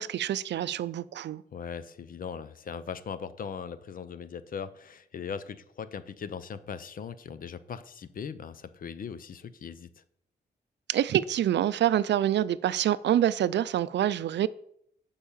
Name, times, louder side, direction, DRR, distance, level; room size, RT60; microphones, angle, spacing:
voice 1, 0.0-1.4 10.9-14.5, right 11 dB, 80° right, 0.4 m, -26 dB
voice 2, 1.5-10.0, left 7 dB, 50° left, 0.6 m, -39 dB
8.3 x 5.5 x 7.2 m
wide cardioid pair, 160°, 18 cm